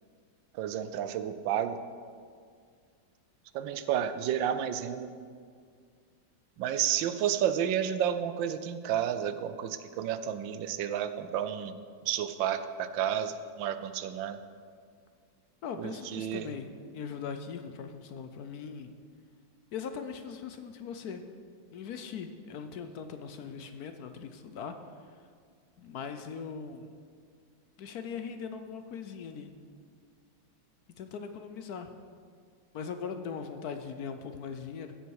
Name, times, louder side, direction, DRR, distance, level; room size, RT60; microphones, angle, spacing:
voice 1, 0.5-1.8 3.5-5.1 6.6-14.4 15.8-16.5, right 9 dB, 85° right, 11 dB, 1.4 m, -31 dB
voice 2, 15.6-16.7 16.9-18.9 19.7-21.2 21.7-24.7 25.8-26.9 27.8-29.5 31.0-31.9 32.7-34.9, left 6 dB, 65° left, 8 dB, 1.0 m, -40 dB
15.0 x 8.1 x 4.7 m, 2.1 s
omnidirectional pair, 2.0 m